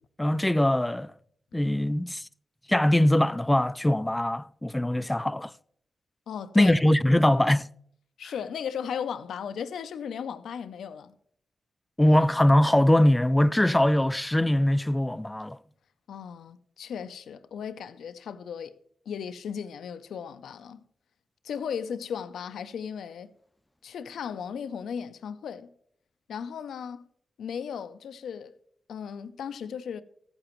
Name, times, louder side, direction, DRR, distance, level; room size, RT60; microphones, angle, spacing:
voice 1, 0.2-1.1 1.5-2.3 2.7-5.5 6.6-7.7 12.0-15.6, left 1 dB, 15° left, 0.3 m, -22 dB
voice 2, 6.3-6.8 8.2-11.1 16.1-18.8 19.1-20.8 21.4-23.3 23.8-25.7 26.3-27.0 27.4-28.5 28.9-30.0, left 7 dB, 85° left, 0.5 m, -36 dB
15.0 x 8.8 x 3.0 m
cardioid pair, 60°, 0 cm